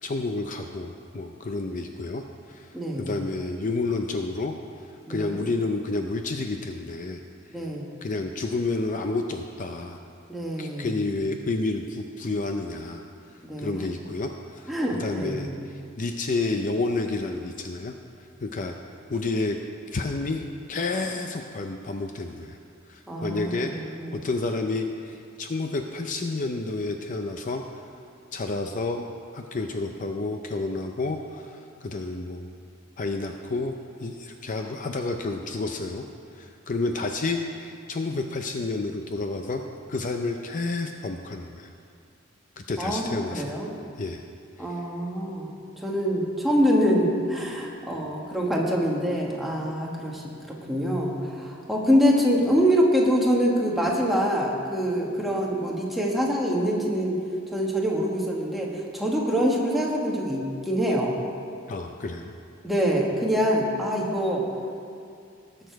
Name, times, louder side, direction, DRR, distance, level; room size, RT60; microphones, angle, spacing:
voice 1, 0.0-2.7 3.0-4.5 4.8-7.2 7.6-7.7 8.0-10.0 10.6-13.0 13.6-17.9 18.4-18.7 19.1-19.6 19.9-20.4 20.7-22.6 22.9-23.7 24.1-27.8 28.3-29.0 29.3-32.5 33.0-36.1 36.3-39.6 39.9-41.7 42.6-43.5 44.0-44.2 44.6-44.7 61.7-62.3, left 3 dB, 40° left, 4 dB, 0.5 m, -30 dB
voice 2, 2.7-3.1 5.1-5.4 7.5-7.9 10.3-11.0 13.4-13.8 14.7-15.4 23.1-24.2 42.8-43.7 44.6-45.5 45.8-57.2 57.5-61.2 62.6-64.4, equal, ahead, -3 dB, 1.6 m, -25 dB
19.0 x 6.7 x 4.6 m, 2.3 s
head